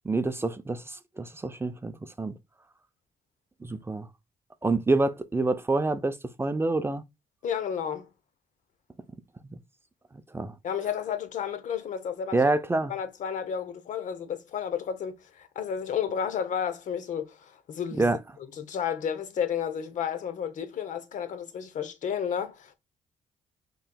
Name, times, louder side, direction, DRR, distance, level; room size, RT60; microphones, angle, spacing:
voice 1, 0.1-2.3 3.6-4.1 4.6-7.0 10.3-10.5 12.3-12.9 18.0-18.2, right 2 dB, 15° right, 0.5 m, -27 dB
voice 2, 7.4-8.1 10.6-12.5 12.9-18.2 18.5-22.7, left 8 dB, 65° left, 0.8 m, -32 dB
5.5 x 3.1 x 2.2 m
cardioid pair, 75°, 14 cm